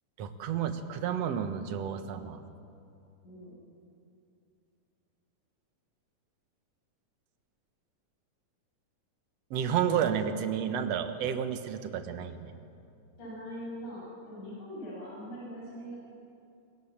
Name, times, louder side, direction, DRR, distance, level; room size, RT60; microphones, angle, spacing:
voice 1, 0.2-2.4 9.5-12.5, right 8 dB, 60° right, 8 dB, 2.3 m, -31 dB
voice 2, 3.2-3.6 13.2-16.0, equal, 70° left, -5 dB, 8.4 m, -42 dB
26.0 x 23.0 x 7.4 m, 2.6 s
omnidirectional pair, 3.6 m